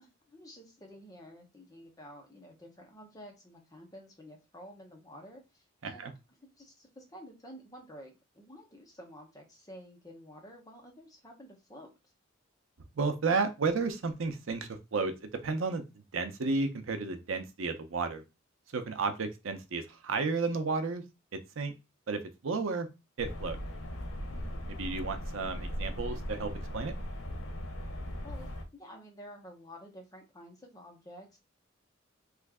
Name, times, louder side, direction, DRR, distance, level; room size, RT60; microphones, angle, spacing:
voice 1, 0.0-6.1 6.6-11.9 24.3-24.7 28.2-31.4, equal, 20° left, 1 dB, 0.8 m, -51 dB
voice 2, 13.0-18.2 18.7-21.0 21.3-21.7 22.1-22.9 23.2-23.6 24.8-26.9, right 4 dB, 70° right, 8 dB, 0.6 m, -32 dB
sound 1, 23.2-28.6, equal, 85° left, 0.8 m, -38 dB
3.1 x 2.5 x 3.5 m, 0.25 s
head